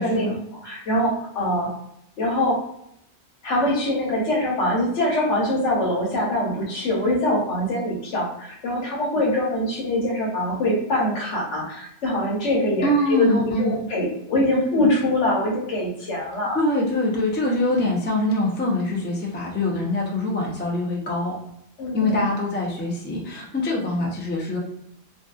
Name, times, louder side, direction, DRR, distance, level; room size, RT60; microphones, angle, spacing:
voice 1, 0.0-0.4 12.8-13.8 16.5-21.4 21.9-24.6, left 1 dB, 20° left, -3 dB, 0.3 m, -24 dB
voice 2, 0.6-1.7 2.2-2.6 3.4-16.6 21.8-22.2, left 1 dB, 80° left, -3 dB, 1.1 m, -23 dB
2.6 x 2.3 x 2.3 m, 0.76 s
omnidirectional pair, 1.2 m